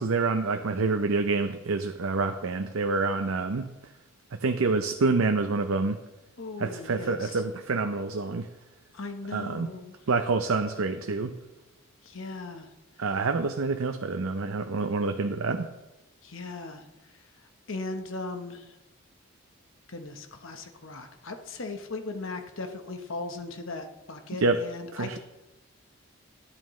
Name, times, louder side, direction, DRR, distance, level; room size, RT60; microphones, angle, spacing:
voice 1, 0.0-3.7 4.4-6.0 6.6-8.5 9.3-9.7 10.1-11.3 13.0-15.7 24.4-24.6 24.9-25.2, right 3 dB, 70° right, 6 dB, 0.6 m, -27 dB
voice 2, 6.4-7.4 8.9-10.0 12.0-12.7 16.2-16.8 17.1-17.2 17.7-18.8 19.9-25.2, left 3 dB, 60° left, 5 dB, 1.1 m, -38 dB
12.5 x 11.0 x 3.2 m, 1.0 s
head